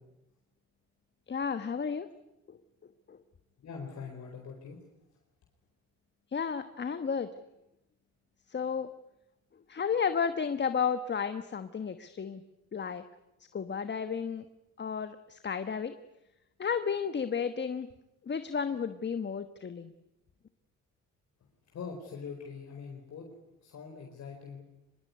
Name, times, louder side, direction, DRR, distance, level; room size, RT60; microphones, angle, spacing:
voice 1, 1.3-2.1 2.5-2.6 3.1-3.2 6.3-7.3 8.5-8.9 9.7-12.4 12.7-13.0 13.5-14.5 14.8-15.9 16.6-17.9 18.2-19.9, left 6 dB, 35° left, 10 dB, 1.3 m, -32 dB
voice 2, 3.6-4.8 21.7-23.3 23.6-24.6, left 5 dB, 60° left, 1 dB, 4.7 m, -43 dB
24.5 x 21.5 x 9.7 m, 0.88 s
cardioid pair, 90°, 30 cm